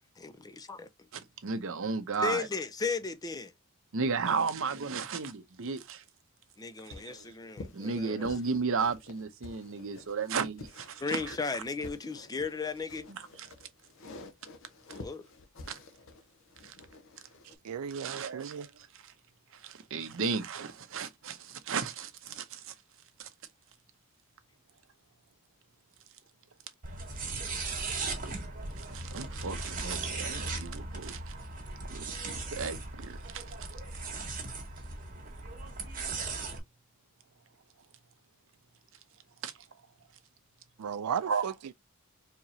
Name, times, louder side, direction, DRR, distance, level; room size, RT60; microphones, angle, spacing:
voice 1, 0.2-0.9 2.2-3.5 6.6-8.2 11.0-13.1 15.0-15.3, left 4 dB, 15° left, 0.4 m, -35 dB
voice 2, 1.1-2.5 3.9-6.0 6.9-7.2 7.7-11.3 13.1-13.5 15.7-15.8 16.6-16.8 17.9-19.1 19.5-22.7 23.2-23.3 28.8-31.3 31.8-33.5 39.4-39.5 41.3-41.5, right 5 dB, 60° right, 0.7 m, -34 dB
sound 1, 6.9-17.6, left 2 dB, 60° left, 0.7 m, -49 dB
voice 3, 17.6-18.7 40.8-41.7, right 7 dB, 90° right, 0.4 m, -35 dB
sound 2, 26.8-36.6, right 3 dB, 40° right, 1.7 m, -38 dB
4.6 x 2.9 x 2.6 m
head